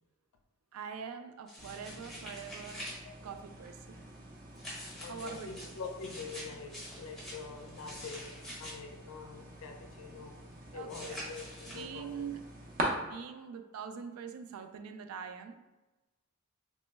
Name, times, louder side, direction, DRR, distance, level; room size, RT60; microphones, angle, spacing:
voice 1, 0.7-2.9 3.2-4.0 5.0-5.8 10.7-11.2 11.6-12.6 13.0-15.6, right 6 dB, 85° right, 0.3 m, -44 dB
sound 1, 1.5-3.0 4.6-8.7 10.9-11.8, equal, ahead, 0.8 m, -46 dB
sound 2, 1.6-12.8, right 1 dB, 40° right, 0.5 m, -46 dB
voice 2, 2.8-3.1 4.9-10.4 10.7-12.3, left 5 dB, 80° left, 0.4 m, -45 dB
3.1 x 2.0 x 3.3 m
head